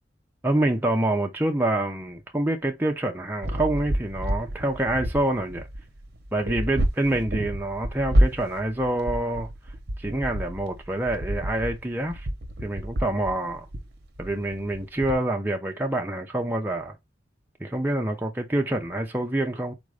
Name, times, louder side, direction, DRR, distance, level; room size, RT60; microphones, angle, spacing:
voice 1, 0.4-5.7 6.3-9.5 10.0-12.3 12.6-13.7 14.2-17.0 17.6-19.7, right 1 dB, 10° right, 0.6 m, -26 dB
sound 1, 3.4-15.1, equal, 60° right, 0.8 m, -29 dB
4.2 x 2.6 x 4.8 m
head